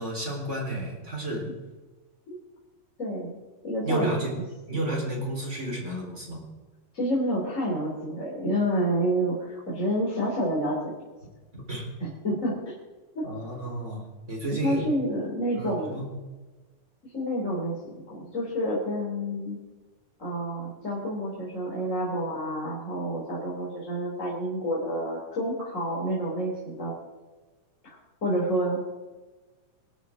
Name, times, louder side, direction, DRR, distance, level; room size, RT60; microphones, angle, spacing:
voice 1, 0.0-1.5 3.8-4.3 4.7-6.5 11.5-11.8 13.2-14.8 15.6-16.1, right 1 dB, 20° right, -1 dB, 4.2 m, -31 dB
voice 2, 3.0-3.4 3.6-4.4 6.9-11.0 12.0-12.7 13.1-13.2 14.6-16.0 17.1-19.6 20.2-26.9 27.8-27.9 28.2-28.8, equal, 20° left, -6 dB, 3.4 m, -29 dB
24.5 x 12.5 x 3.8 m, 1.2 s
omnidirectional pair, 4.2 m